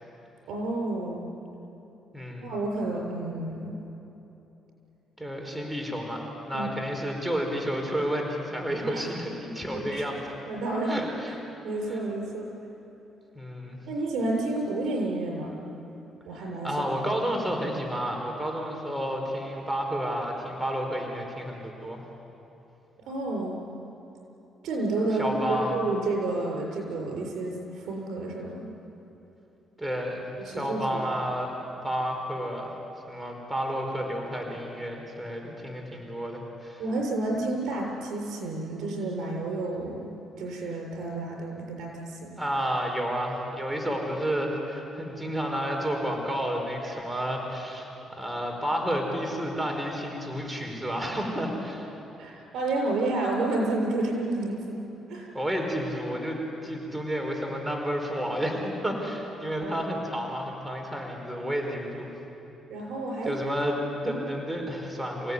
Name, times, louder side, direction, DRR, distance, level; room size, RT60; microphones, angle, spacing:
voice 1, 0.5-1.3 2.4-3.8 6.5-6.7 8.9-9.1 9.7-10.0 10.5-10.9 11.6-12.5 13.9-15.5 16.2-16.7 23.1-23.6 24.6-28.7 30.4-30.8 36.8-40.1 40.4-42.3 52.2-54.8 55.1-55.3 59.6-59.9 62.7-63.4 64.0-64.2, right 2 dB, 80° right, 0 dB, 6.7 m, -30 dB
voice 2, 2.1-2.5 5.2-10.2 10.9-11.4 11.9-12.0 13.3-13.8 16.6-22.0 25.2-25.8 29.8-31.5 31.8-32.7 33.1-36.8 42.4-47.9 48.2-51.9 55.3-62.1 63.2-65.3, equal, 5° right, 1 dB, 4.7 m, -31 dB
27.5 x 17.5 x 9.8 m, 3.0 s
cardioid pair, 90°, 0 cm